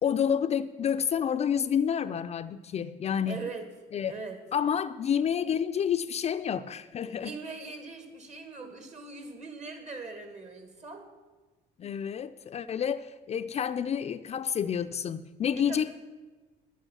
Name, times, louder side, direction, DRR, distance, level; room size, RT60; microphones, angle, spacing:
voice 1, 0.0-3.4 3.9-4.1 4.5-7.4 11.8-15.9, left 8 dB, 40° left, 10 dB, 0.4 m, -29 dB
voice 2, 3.2-3.7 4.1-4.4 7.0-11.1 15.5-15.8, right 3 dB, 40° right, 7 dB, 1.9 m, -41 dB
10.5 x 9.0 x 6.2 m, 1.3 s
cardioid pair, 110°, 17 cm